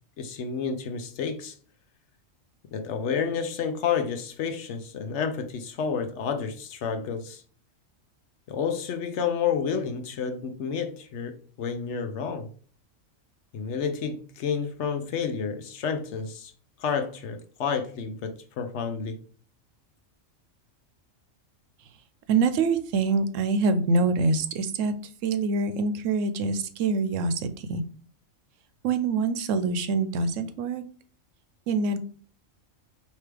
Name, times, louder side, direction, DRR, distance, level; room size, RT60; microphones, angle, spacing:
voice 1, 0.2-1.6 2.7-7.4 8.5-12.5 13.5-16.5 16.8-19.2, left 6 dB, 65° left, 0.9 m, -30 dB
voice 2, 22.3-24.9 25.2-27.8 28.8-30.8 31.7-32.0, right 4 dB, 75° right, 0.9 m, -25 dB
4.6 x 2.9 x 3.3 m
omnidirectional pair, 1.3 m